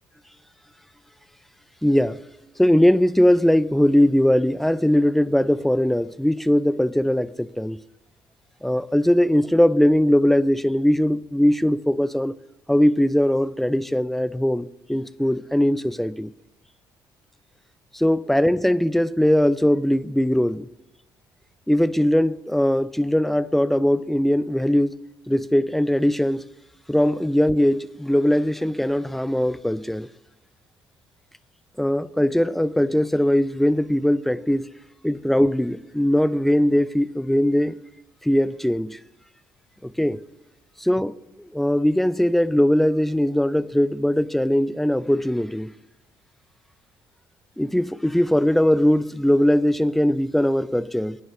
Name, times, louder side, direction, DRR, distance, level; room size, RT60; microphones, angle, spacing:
voice 1, 1.8-2.2 2.6-7.8 8.6-12.3 12.7-16.3 17.9-20.7 21.7-25.0 25.3-26.4 26.9-30.1 31.8-34.7 35.0-37.8 38.2-39.0 39.8-40.2 40.8-45.7 47.6-51.2, left 1 dB, ahead, 0.4 m, -20 dB
11.0 x 9.3 x 6.4 m
figure-of-eight pair, 45°, 11 cm